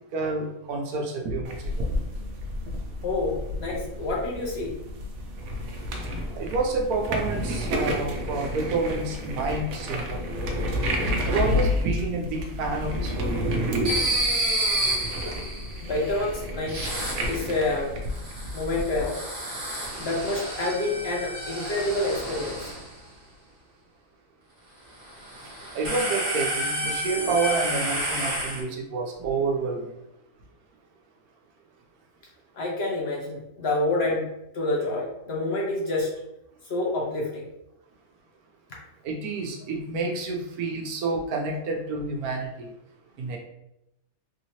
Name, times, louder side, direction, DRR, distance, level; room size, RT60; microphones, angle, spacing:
voice 1, 0.1-1.9 6.4-10.3 11.3-13.9 25.7-29.8 39.0-42.7 43.2-43.4, right 3 dB, 85° right, 1 dB, 1.2 m, -28 dB
sound 1, 1.4-19.1, left 1 dB, 65° right, 0.8 m, -31 dB
voice 2, 3.0-4.7 15.8-16.8 17.2-17.9 18.5-19.2 20.0-22.7 32.5-36.1 36.6-37.5, left 2 dB, 55° left, -3 dB, 0.8 m, -28 dB
sound 2, 13.8-15.9 16.7-17.6 18.0-22.9 25.1-28.6, right 1 dB, 40° right, 1.1 m, -30 dB
3.4 x 2.8 x 2.8 m, 0.86 s
omnidirectional pair, 1.5 m